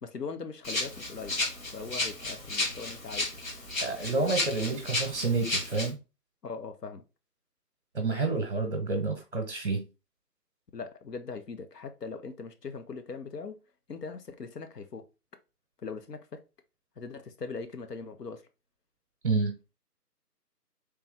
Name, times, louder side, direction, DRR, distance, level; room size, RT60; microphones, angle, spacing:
voice 1, 0.0-1.4 1.7-3.3 6.4-7.0 10.7-13.5 13.9-15.0 15.8-16.2 17.0-18.4, left 4 dB, 75° left, 0.9 m, -40 dB
Rattle (instrument), 0.6-5.9, left 2 dB, 55° left, 1.3 m, -33 dB
voice 2, 3.8-6.0 7.9-9.8 19.2-19.5, right 3 dB, 45° right, 0.8 m, -29 dB
3.4 x 3.0 x 3.4 m
figure-of-eight pair, 160°, 48 cm